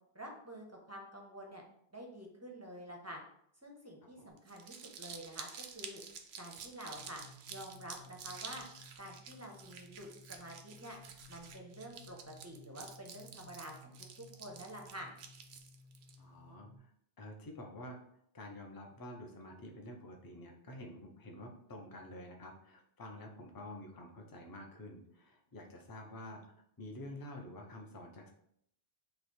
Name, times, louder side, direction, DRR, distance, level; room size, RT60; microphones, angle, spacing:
voice 1, 0.1-1.6 1.9-3.2 3.6-6.0 6.4-7.2 7.5-8.7 9.0-11.0 11.3-15.1, equal, 20° right, 0 dB, 0.6 m, -48 dB
Crumpling crinkling, 4.4-16.2, right 6 dB, 85° right, 0.8 m, -50 dB
sound 1, 6.9-16.8, left 2 dB, 75° left, 1.2 m, -58 dB
voice 2, 16.2-16.9 17.2-18.0 18.3-26.5 26.8-28.3, left 1 dB, 25° left, 2 dB, 0.5 m, -49 dB
3.2 x 2.8 x 4.3 m, 0.70 s
omnidirectional pair, 1.0 m